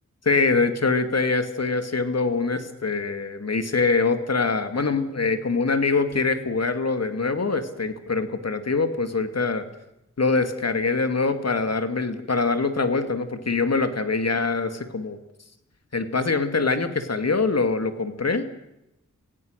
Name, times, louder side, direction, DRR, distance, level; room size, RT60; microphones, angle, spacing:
voice 1, 0.3-9.6 10.2-15.2 15.9-18.5, left 4 dB, 55° left, 8 dB, 2.3 m, -24 dB
25.0 x 17.0 x 6.6 m, 0.88 s
cardioid pair, 50°, 31 cm